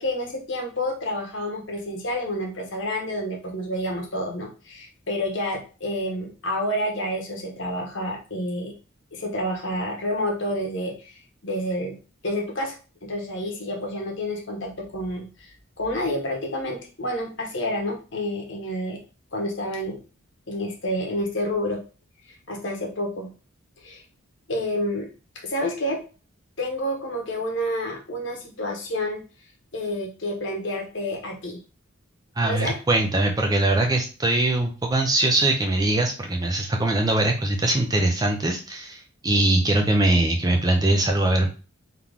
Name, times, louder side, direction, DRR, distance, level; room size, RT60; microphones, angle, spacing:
voice 1, 0.0-8.7 9.1-11.1 11.4-12.0 12.2-19.0 19.3-20.0 20.5-21.8 22.5-23.3 23.8-24.0 24.5-25.1 25.4-26.0 26.6-29.2 29.7-31.6 32.4-32.8, left 1 dB, 55° left, 1 dB, 1.1 m, -29 dB
voice 2, 32.4-41.5, right 2 dB, 15° right, 2 dB, 0.5 m, -22 dB
3.9 x 3.0 x 3.5 m, 0.35 s
head